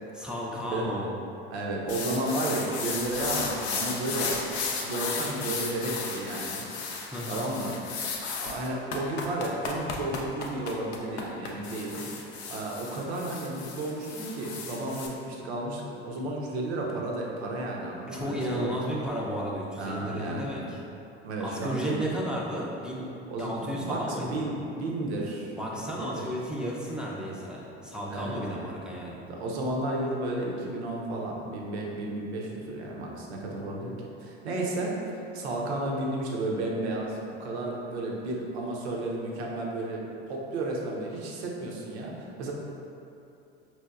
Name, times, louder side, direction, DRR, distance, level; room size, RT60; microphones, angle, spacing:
voice 1, 0.2-1.1 7.1-7.5 18.1-20.8 21.4-23.1 23.4-24.4 25.5-29.3, equal, 5° right, -5 dB, 0.4 m, -33 dB
voice 2, 1.5-4.3 4.8-6.6 7.3-7.7 8.4-12.0 12.5-18.7 19.8-20.6 21.2-22.1 23.3-26.2 28.1-28.7 29.3-33.9 34.2-42.5, right 2 dB, 80° right, -2 dB, 0.6 m, -33 dB
sound 1, 1.9-15.1, left 4 dB, 80° left, 0.5 m, -34 dB
4.2 x 2.2 x 2.3 m, 2.7 s
hypercardioid pair, 75°, 33 cm